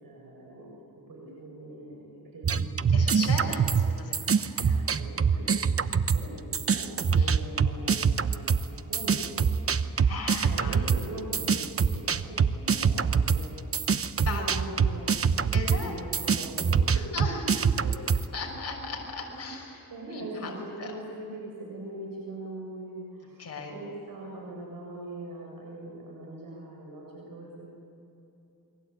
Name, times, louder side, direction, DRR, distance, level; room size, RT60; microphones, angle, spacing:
voice 1, 0.0-0.7 1.1-3.2 4.7-9.8 10.4-13.6 14.3-17.1 17.8-18.0 19.4-27.7, right 1 dB, 65° right, -2 dB, 7.4 m, -41 dB
sound 1, 2.4-6.3 6.5-18.3, right 6 dB, 40° right, 1.0 m, -25 dB
voice 2, 2.9-4.8 7.1-7.3 10.0-10.8 14.2-14.5 15.5-15.9 16.9-17.7 18.3-20.5 20.8-20.9 23.4-23.8, left 3 dB, 40° left, 0 dB, 6.2 m, -37 dB
29.0 x 22.5 x 8.6 m, 2.8 s
cardioid pair, 85°, 36 cm